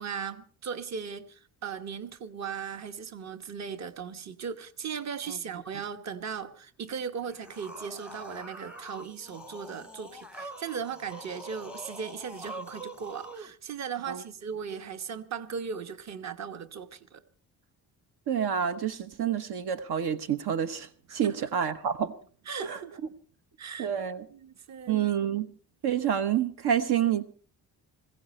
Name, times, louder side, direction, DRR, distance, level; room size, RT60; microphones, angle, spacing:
voice 1, 0.0-17.2 21.1-21.5 22.5-23.0 23.6-23.9 24.3-25.0, right 6 dB, 40° right, 1.2 m, -38 dB
sound 1, 7.2-13.5, right 1 dB, 5° right, 0.7 m, -44 dB
voice 2, 18.3-22.1 22.6-22.8 23.8-24.2 24.9-25.5 25.8-27.2, right 9 dB, 70° right, 1.1 m, -28 dB
20.5 x 16.0 x 4.3 m
cardioid pair, 145°, 40 cm